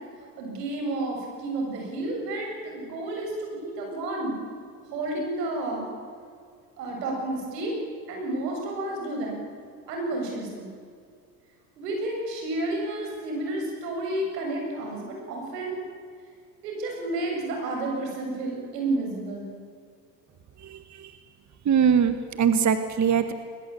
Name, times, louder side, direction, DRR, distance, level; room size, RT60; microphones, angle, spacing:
voice 1, 0.4-4.3 4.9-5.9 6.8-7.7 8.1-9.4 9.9-10.7 11.8-15.8 16.6-19.5, right 2 dB, 85° right, 1 dB, 7.7 m, -31 dB
voice 2, 21.7-23.3, right 7 dB, 35° right, 10 dB, 1.7 m, -21 dB
21.5 x 21.0 x 8.5 m, 2.2 s
hypercardioid pair, 80°, 48 cm